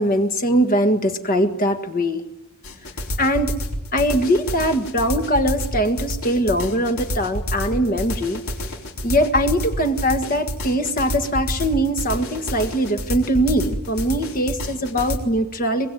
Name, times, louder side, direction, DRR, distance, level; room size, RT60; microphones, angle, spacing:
voice 1, 0.0-2.3 3.2-3.6 3.9-8.4 9.0-15.9, equal, 40° left, 6 dB, 1.7 m, -21 dB
sound 1, 2.6-15.2, equal, 75° left, 4.0 m, -28 dB
24.5 x 22.5 x 9.3 m, 0.87 s
head